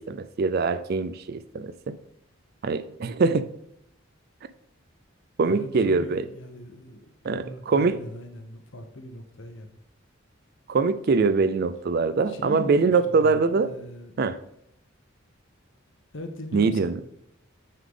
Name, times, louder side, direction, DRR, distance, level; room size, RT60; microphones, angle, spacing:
voice 1, 0.0-2.0 2.6-3.5 5.4-6.2 7.2-8.0 10.7-13.7 14.2-14.4 16.5-17.0, right 4 dB, 50° right, 13 dB, 0.4 m, -23 dB
voice 2, 5.5-9.7 12.3-14.2 16.1-17.0, left 1 dB, 60° left, 6 dB, 0.9 m, -40 dB
9.2 x 3.8 x 3.6 m, 0.75 s
head